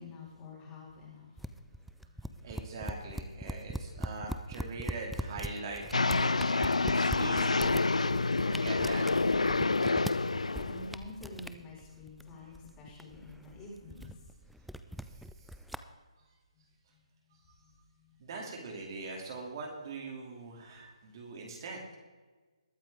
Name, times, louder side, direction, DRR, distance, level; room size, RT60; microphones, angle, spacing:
voice 1, 0.0-2.5 3.8-3.9 10.2-14.1 16.5-16.6 16.9-18.2, left 2 dB, 20° left, -4 dB, 4.7 m, -49 dB
sound 1, 1.4-15.8, equal, ahead, 0.4 m, -42 dB
voice 2, 2.4-7.6 7.9-9.1 15.0-15.5 17.5-17.6 18.2-21.8, right 3 dB, 40° right, 1 dB, 2.7 m, -42 dB
sound 2, 5.9-11.0, left 3 dB, 90° left, 0.3 m, -28 dB
21.0 x 8.8 x 3.6 m, 1.3 s
figure-of-eight pair, 150°, 3 cm